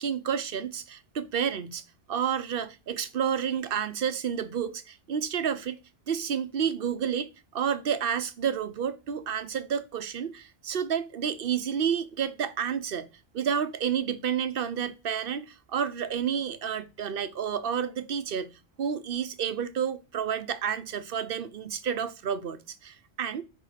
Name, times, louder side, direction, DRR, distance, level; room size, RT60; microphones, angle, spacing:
voice 1, 0.0-1.8 2.1-5.8 6.1-13.1 13.3-23.4, right 8 dB, 55° right, 0.9 m, -30 dB
8.7 x 3.7 x 5.7 m
omnidirectional pair, 1.2 m